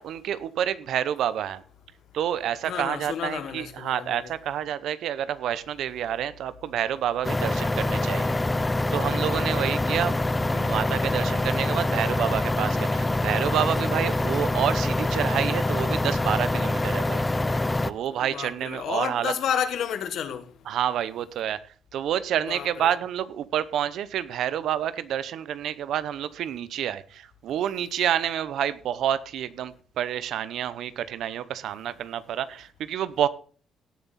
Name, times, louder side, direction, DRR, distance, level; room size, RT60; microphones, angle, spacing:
voice 1, 0.0-1.6 2.1-10.2 10.5-19.3 20.7-21.6 21.9-33.3, right 10 dB, 75° right, 0.8 m, -29 dB
voice 2, 2.6-4.3 18.2-20.5 22.4-23.0, left 8 dB, 70° left, 1.4 m, -31 dB
sound 1, 7.2-17.9, left 2 dB, 20° left, 0.6 m, -25 dB
17.0 x 7.2 x 4.2 m
cardioid pair, 90°, 0 cm